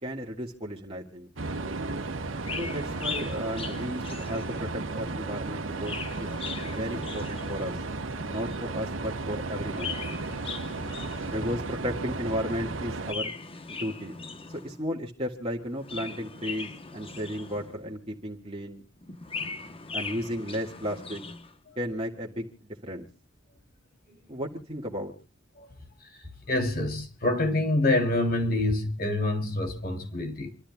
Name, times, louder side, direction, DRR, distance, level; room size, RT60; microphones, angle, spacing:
voice 1, 0.0-1.3 2.6-6.3 6.6-7.8 8.2-10.0 11.3-13.3 13.7-14.2 14.6-18.8 19.9-21.2 21.8-23.1 24.3-25.1, equal, 30° right, 1.9 m, -34 dB
sound 1, 1.4-13.1, right 3 dB, 85° right, 1.3 m, -34 dB
Chirp tweet, 2.4-4.9 5.6-8.0 9.5-11.7 13.0-14.9 15.7-17.9 19.0-21.5, left 4 dB, 30° left, 1.0 m, -39 dB
voice 2, 26.5-30.5, left 2 dB, 50° left, 3.3 m, -26 dB
28.0 x 13.0 x 2.3 m
head